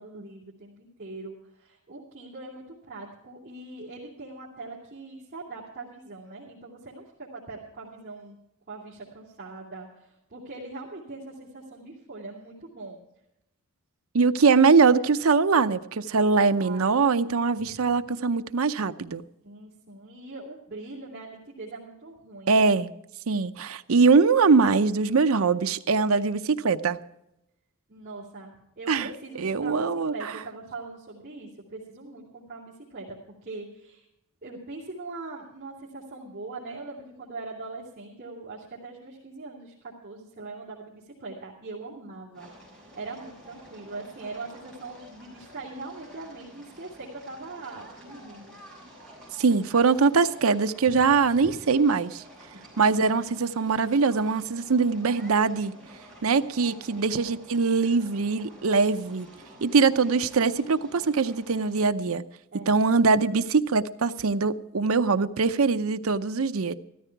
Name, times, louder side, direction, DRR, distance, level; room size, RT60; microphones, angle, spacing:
voice 1, 0.0-8.4 8.7-13.0 16.6-17.0 17.6-17.9 19.4-22.6 27.9-34.0 34.4-42.5 42.9-48.6 50.9-51.6 52.5-52.6 57.0-57.3 62.5-63.2, right 3 dB, 45° right, -6 dB, 2.7 m, -41 dB
voice 2, 14.1-19.2 22.5-22.9 23.3-27.0 28.9-29.1 29.4-30.3 49.4-52.2 52.8-55.7 56.2-59.3 59.6-62.2 62.7-66.7, right 4 dB, 70° right, 11 dB, 0.6 m, -22 dB
sound 1, 42.3-61.8, equal, 5° left, 6.3 m, -50 dB
14.0 x 13.5 x 4.6 m, 0.85 s
head